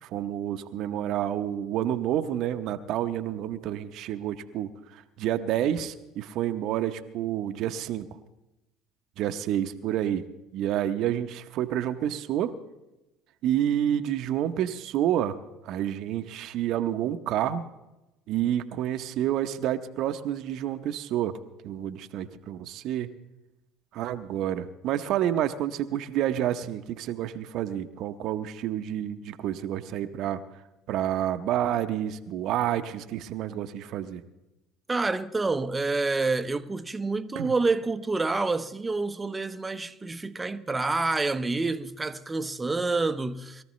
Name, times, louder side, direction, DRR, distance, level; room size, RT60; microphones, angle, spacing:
voice 1, 0.0-8.1 9.2-10.3 10.5-12.5 13.4-15.4 15.6-17.7 18.3-21.4 21.6-23.1 23.9-30.4 30.9-34.2 37.4-37.5, right 11 dB, 60° right, 0.8 m, -29 dB
voice 2, 34.9-43.6, right 3 dB, 20° right, 0.7 m, -28 dB
22.0 x 14.0 x 3.1 m
hypercardioid pair, 70°, 0 cm